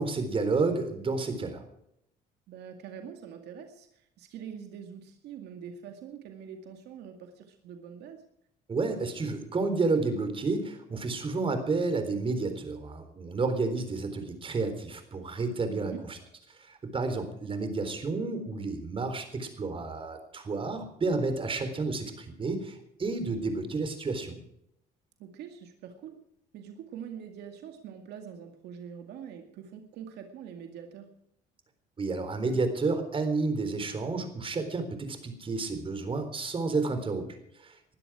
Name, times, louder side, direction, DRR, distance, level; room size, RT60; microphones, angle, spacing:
voice 1, 0.0-1.6 8.7-16.2 16.6-24.4 32.0-37.2 37.6-37.8, right 3 dB, 30° right, 8 dB, 3.9 m, -30 dB
voice 2, 2.5-8.2 15.7-16.0 25.2-26.2 26.5-31.2, right 8 dB, 80° right, 5 dB, 2.1 m, -44 dB
20.5 x 12.5 x 4.9 m, 0.76 s
cardioid pair, 110°, 17 cm